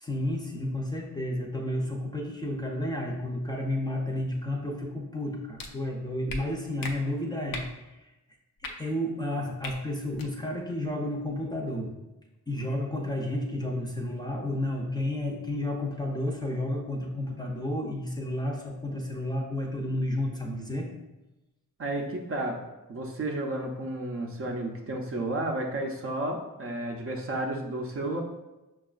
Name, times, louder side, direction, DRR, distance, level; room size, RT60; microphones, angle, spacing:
voice 1, 0.0-8.1 8.6-11.9 12.5-20.9, left 1 dB, 15° left, -2 dB, 0.5 m, -31 dB
sound 1, 5.6-5.7 6.3-6.4 6.8-6.9 7.5-7.7 8.6-8.7 9.6-9.7 10.1-10.3, left 3 dB, 80° left, 0.5 m, -36 dB
voice 2, 21.8-22.6 22.9-28.2, right 1 dB, 40° right, 1 dB, 0.5 m, -32 dB
5.7 x 2.3 x 2.3 m, 1.0 s
wide cardioid pair, 110°, 33 cm